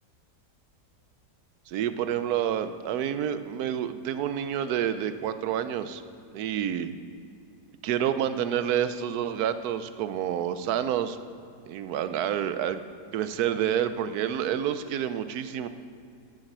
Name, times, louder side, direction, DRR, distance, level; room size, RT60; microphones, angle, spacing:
voice 1, 1.7-6.0 6.3-6.9 7.8-11.2 11.7-12.8 13.1-15.7, right 9 dB, 75° right, 12 dB, 1.0 m, -28 dB
8.9 x 7.3 x 8.9 m, 2.5 s
omnidirectional pair, 1.7 m